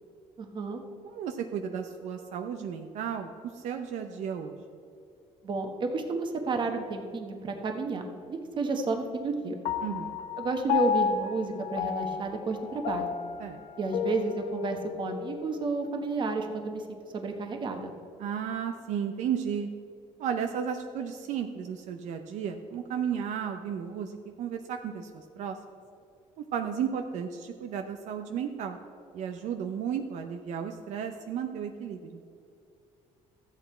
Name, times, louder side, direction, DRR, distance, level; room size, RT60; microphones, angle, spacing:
voice 1, 0.4-0.8 5.4-9.5 10.4-13.1 13.8-17.9, right 3 dB, 40° right, 4 dB, 1.3 m, -31 dB
voice 2, 1.0-4.6 9.8-10.2 13.4-13.6 18.2-19.7 20.2-25.6 26.4-28.8 29.1-32.2, right 8 dB, 70° right, 5 dB, 0.7 m, -34 dB
Piano, 9.7-16.3, left 7 dB, 75° left, 0.7 m, -33 dB
13.5 x 8.3 x 4.4 m, 2.5 s
cardioid pair, 130°, 13 cm